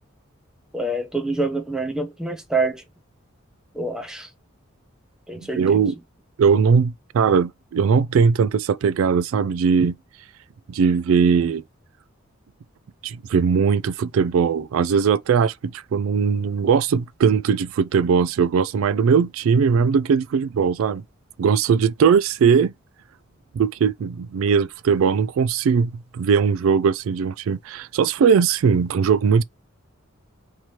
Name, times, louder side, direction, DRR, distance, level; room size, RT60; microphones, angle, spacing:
voice 1, 0.7-2.8 3.7-4.3 5.3-5.8, right 2 dB, 5° right, 0.7 m, -26 dB
voice 2, 5.5-5.9 6.4-10.0 10.7-11.6 13.0-21.0 21.4-22.7 23.5-29.4, right 6 dB, 75° right, 0.3 m, -19 dB
3.2 x 2.9 x 4.2 m
head